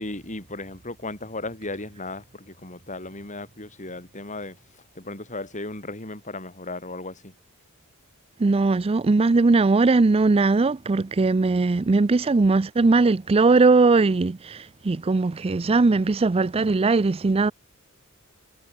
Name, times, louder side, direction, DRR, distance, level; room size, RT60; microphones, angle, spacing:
voice 1, 0.0-4.6 5.0-7.3, left 2 dB, 35° left, 6.0 m, -35 dB
voice 2, 8.4-17.5, right 3 dB, 25° right, 0.4 m, -20 dB
head